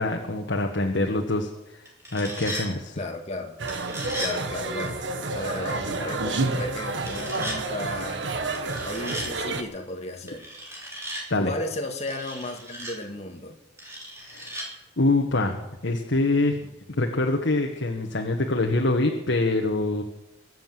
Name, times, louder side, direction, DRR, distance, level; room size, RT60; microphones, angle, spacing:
voice 1, 0.0-1.5 2.1-3.0 11.3-11.5 14.3-14.6 15.0-16.6 16.9-20.0, left 2 dB, 75° left, 2 dB, 1.4 m, -24 dB
sound 1, 1.9-2.7 3.7-4.3 7.0-7.6 8.5-9.3 10.3-11.2 12.1-12.9 13.8-14.7, right 1 dB, 15° right, 3.5 m, -36 dB
voice 2, 3.0-3.5 4.2-5.0 5.3-8.3 8.8-10.5 11.4-13.6, left 1 dB, 35° left, 3 dB, 2.0 m, -34 dB
sound 2, 3.6-9.6, right 2 dB, 75° right, 1.5 m, -29 dB
23.0 x 7.8 x 7.6 m, 0.93 s
head